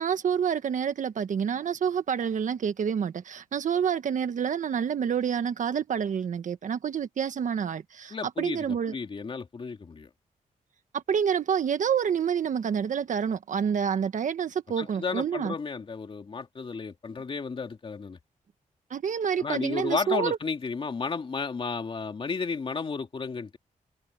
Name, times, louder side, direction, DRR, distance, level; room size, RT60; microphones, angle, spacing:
voice 1, 0.0-8.9 10.9-15.5 18.9-20.4, right 7 dB, 65° right, 1.3 m, -28 dB
voice 2, 8.1-10.1 14.8-18.2 19.4-23.6, left 4 dB, 40° left, 2.6 m, -33 dB
wide cardioid pair, 135°, 14 cm